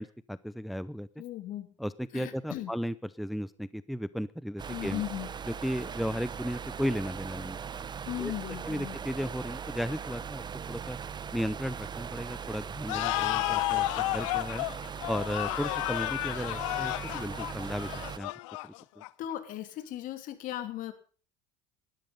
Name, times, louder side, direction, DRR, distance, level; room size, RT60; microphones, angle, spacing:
voice 1, 0.0-1.1 1.8-5.0 5.5-7.6 8.2-8.3 8.6-11.0 11.3-14.7 15.1-18.3 18.6-18.7, equal, ahead, 17 dB, 0.7 m, -35 dB
voice 2, 1.2-1.7 2.1-2.7 4.7-5.3 8.0-9.0 19.2-20.9, left 13 dB, 55° left, 10 dB, 3.1 m, -37 dB
sound 1, 4.6-18.2, right 7 dB, 25° right, 1.0 m, -40 dB
sound 2, 12.9-19.3, left 20 dB, 75° left, 0.8 m, -32 dB
19.5 x 12.5 x 5.4 m, 0.40 s
hypercardioid pair, 85°, 16 cm